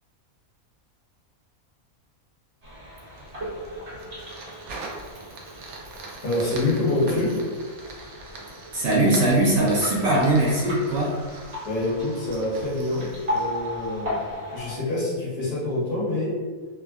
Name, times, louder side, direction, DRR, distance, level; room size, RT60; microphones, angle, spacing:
sound 1, 2.6-14.8, left 1 dB, 35° right, 0.8 m, -36 dB
Fire, 3.0-14.3, right 3 dB, 90° right, 1.0 m, -43 dB
voice 1, 6.2-7.4 11.6-14.2 14.5-16.4, left 2 dB, 65° left, -7 dB, 1.3 m, -26 dB
voice 2, 8.7-11.1, right 1 dB, 60° right, -5 dB, 0.9 m, -20 dB
3.5 x 2.1 x 2.3 m, 1.4 s
omnidirectional pair, 1.5 m